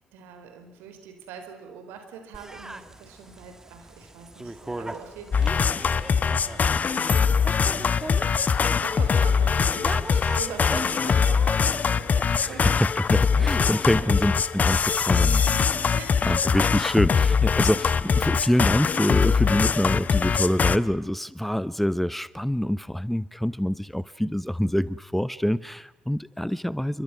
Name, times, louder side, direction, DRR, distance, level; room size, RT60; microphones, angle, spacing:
voice 1, 0.0-12.8 13.4-13.5 13.9-14.2 15.4-16.4, right 6 dB, 70° right, 6 dB, 4.4 m, -43 dB
sound 1, 2.3-13.9, right 1 dB, 15° right, 2.0 m, -41 dB
sound 2, 5.3-20.8, left 6 dB, 45° left, 1.0 m, -22 dB
voice 2, 12.4-15.4 16.3-27.0, equal, 5° left, 17 dB, 0.9 m, -26 dB
29.0 x 24.0 x 6.1 m, 1.1 s
hypercardioid pair, 45°, 4 cm